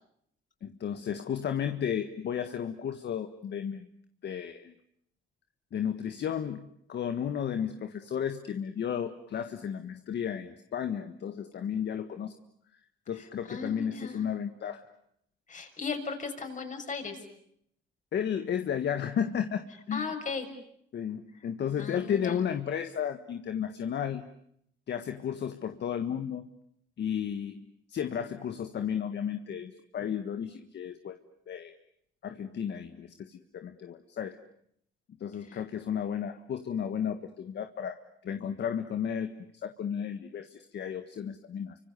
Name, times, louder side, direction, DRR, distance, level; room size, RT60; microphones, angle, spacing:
voice 1, 0.6-3.9 4.2-4.7 5.7-12.3 13.1-14.8 18.1-20.1 20.9-24.2 24.9-26.5 27.0-27.6 27.9-31.2 31.5-31.7 32.2-34.4 35.2-39.3 39.6-41.8, left 8 dB, 60° left, 8 dB, 1.6 m, -33 dB
voice 2, 13.4-14.2 15.5-17.2 19.9-20.5 21.8-22.4 35.5-35.6, left 4 dB, 40° left, 5 dB, 6.6 m, -36 dB
30.0 x 25.5 x 7.0 m, 0.70 s
cardioid pair, 90°, 20 cm